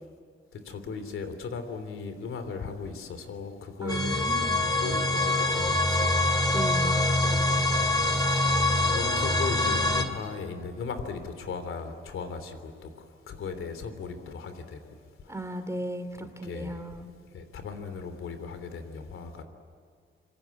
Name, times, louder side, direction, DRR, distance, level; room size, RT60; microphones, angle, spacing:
voice 1, 0.7-6.2 8.2-8.4 8.9-12.7 13.3-14.8 16.4-16.8 17.3-19.4, left 5 dB, 85° left, 9 dB, 3.3 m, -37 dB
voice 2, 3.8-4.5 6.5-7.1 15.3-17.1, right 1 dB, 15° right, 8 dB, 2.9 m, -35 dB
sound 1, 3.9-10.1, left 2 dB, 20° left, 2.4 m, -25 dB
27.0 x 24.0 x 8.5 m, 2.2 s
cardioid pair, 115°, 21 cm